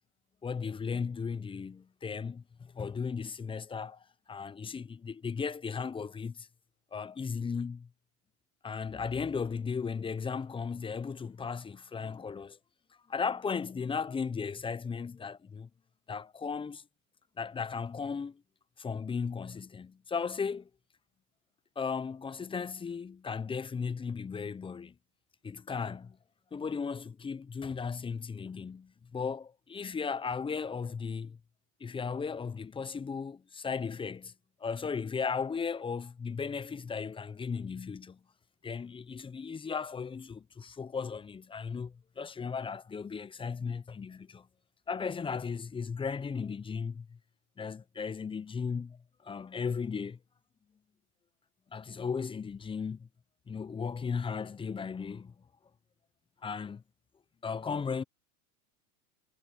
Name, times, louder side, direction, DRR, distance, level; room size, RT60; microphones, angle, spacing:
voice 1, 0.4-6.5 6.9-7.9 8.6-12.6 13.1-15.7 16.1-16.8 17.4-18.4 18.8-20.7 21.8-24.9 25.4-26.2 26.5-31.4 31.8-34.3 34.6-38.2 38.6-44.5 44.9-47.2 47.6-50.2 51.7-53.1 53.5-55.3 56.4-56.8 57.4-58.0, left 5 dB, 10° left, 0.7 m, -36 dB
hypercardioid pair, 110°, 44 cm